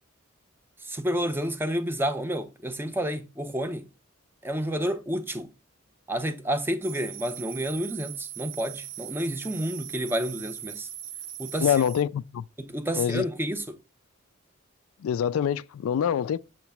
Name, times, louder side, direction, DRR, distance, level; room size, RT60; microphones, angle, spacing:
voice 1, 0.8-3.9 4.4-5.5 6.1-10.9 11.4-11.7 12.6-13.8, equal, 10° right, 0.5 m, -30 dB
sound 1, 6.8-12.0, right 11 dB, 65° right, 0.6 m, -40 dB
voice 2, 11.6-12.4 13.0-13.2 15.0-16.4, left 8 dB, 85° left, 0.3 m, -25 dB
6.5 x 3.0 x 5.7 m
head